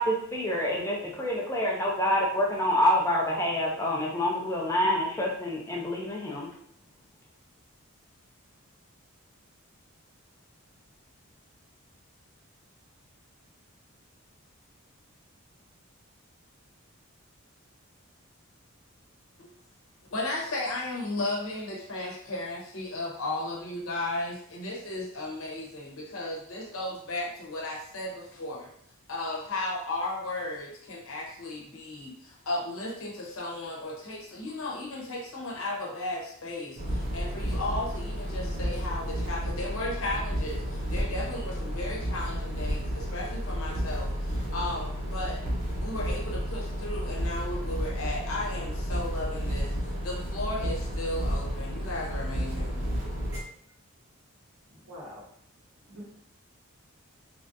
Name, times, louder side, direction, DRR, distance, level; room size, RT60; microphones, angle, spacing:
voice 1, 0.0-6.5, left 1 dB, 15° left, -2 dB, 0.5 m, -27 dB
voice 2, 20.1-28.7 29.1-45.4 45.8-52.8, left 2 dB, 70° left, -2 dB, 0.9 m, -35 dB
sound 1, 36.8-53.4, equal, 50° right, 1.0 m, -32 dB
voice 3, 54.8-55.2 55.9-56.1, equal, 80° right, -5 dB, 1.2 m, -43 dB
3.3 x 2.4 x 2.6 m, 0.65 s
head